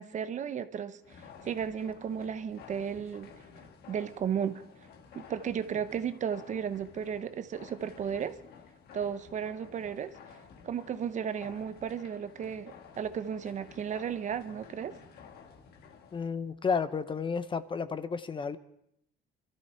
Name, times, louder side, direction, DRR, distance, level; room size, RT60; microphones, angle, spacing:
voice 1, 0.0-3.3 3.9-4.6 5.1-8.4 8.9-10.1 10.6-15.0, right 8 dB, 45° right, 12 dB, 0.8 m, -34 dB
sound 1, 1.0-16.3, left 6 dB, 70° left, 1.6 m, -53 dB
voice 2, 16.1-18.6, left 5 dB, 30° left, 13 dB, 0.8 m, -32 dB
23.0 x 13.0 x 4.5 m, 0.74 s
cardioid pair, 110°, 17 cm